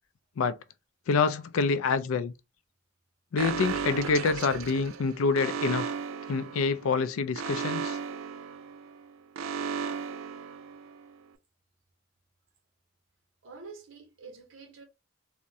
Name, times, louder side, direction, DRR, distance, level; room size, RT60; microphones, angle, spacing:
voice 1, 1.1-2.3 3.3-5.9 6.3-8.0, left 4 dB, 90° left, 0.4 m, -27 dB
Alarm, 3.4-11.1, right 6 dB, 85° right, 0.4 m, -35 dB
voice 2, 13.4-14.8, right 4 dB, 65° right, 0.9 m, -47 dB
3.5 x 2.1 x 2.7 m
head